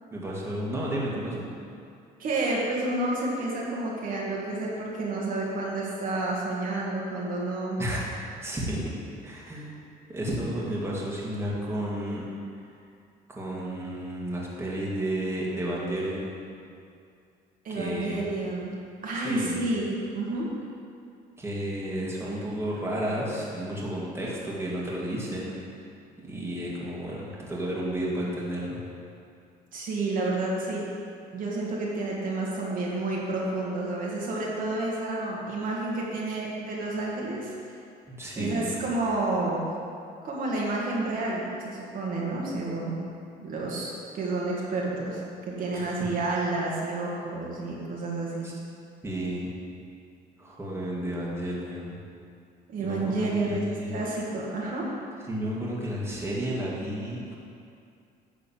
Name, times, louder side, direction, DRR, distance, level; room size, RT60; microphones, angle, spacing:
voice 1, 0.1-1.5 7.8-8.1 8.4-8.9 9.2-9.7 10.1-12.2 13.3-16.3 17.7-18.2 19.1-19.6 21.4-25.5 26.3-28.8 38.1-38.8 45.7-46.0 48.4-48.5 49.0-49.5 50.4-52.0 52.8-54.0 55.3-57.3, right 1 dB, 15° right, -5 dB, 1.9 m, -32 dB
voice 2, 2.2-7.8 17.6-18.7 19.0-20.5 29.7-30.8 31.3-37.7 38.3-39.6 40.2-43.0 43.4-48.5 52.7-55.0, right 2 dB, 55° right, -4 dB, 1.8 m, -30 dB
10.0 x 3.8 x 7.3 m, 2.4 s
cardioid pair, 110°, 17 cm